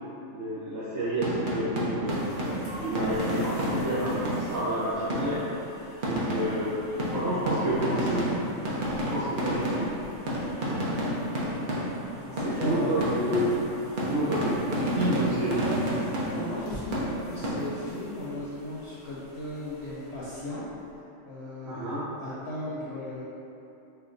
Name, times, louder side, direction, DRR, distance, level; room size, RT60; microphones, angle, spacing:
voice 1, 0.3-2.3 2.7-5.4 6.0-6.7 7.1-8.2 9.1-9.9 12.4-13.4 14.1-15.6 21.6-22.0, right 1 dB, 80° right, -17 dB, 1.4 m, -29 dB
sound 1, 1.0-4.7 5.1-5.5 6.0-12.1 12.4-16.7 16.9-17.9, right 1 dB, 50° right, 0.6 m, -30 dB
sound 2, 2.1-20.9, left 1 dB, 40° left, 0.4 m, -47 dB
voice 2, 12.1-13.0 14.8-15.0 16.3-20.7 21.3-23.2, left 1 dB, 65° left, -8 dB, 0.8 m, -37 dB
4.5 x 2.2 x 2.5 m, 2.8 s
omnidirectional pair, 1.4 m